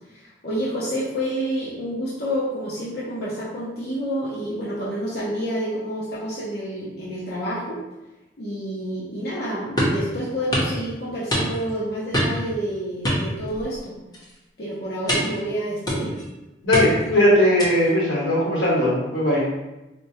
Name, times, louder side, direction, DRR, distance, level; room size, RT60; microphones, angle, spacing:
voice 1, 0.1-7.8 8.4-13.9 14.6-16.2, equal, 55° left, -7 dB, 0.6 m, -29 dB
sound 1, 9.8-10.0 10.5-10.7 11.3-11.7 12.1-12.5 13.0-13.8 14.1-14.4 15.1-15.4 15.9-16.3 16.7-17.1 17.6-17.9, equal, 20° left, 0.7 m, -24 dB
voice 2, 16.6-19.4, left 1 dB, 85° left, -6 dB, 1.2 m, -19 dB
4.3 x 2.2 x 2.7 m, 1.0 s
head